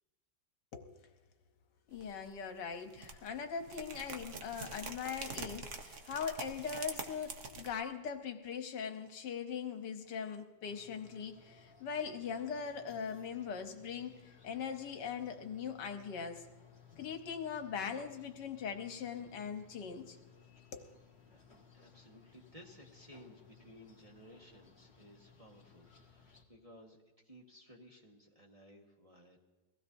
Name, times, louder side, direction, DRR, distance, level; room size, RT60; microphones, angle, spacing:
voice 1, 0.7-1.0 1.9-16.4 17.0-20.2 20.7-20.9, left 6 dB, 75° left, 6 dB, 1.6 m, -41 dB
sound 1, 1.9-2.4 2.7-7.7, right 4 dB, 50° right, 1.2 m, -45 dB
sound 2, 10.6-26.4, left 6 dB, 30° left, 1.7 m, -61 dB
voice 2, 20.4-20.9 21.2-21.5 21.7-29.4, equal, 20° right, -1 dB, 1.4 m, -58 dB
22.0 x 16.0 x 2.7 m, 1.2 s
omnidirectional pair, 1.9 m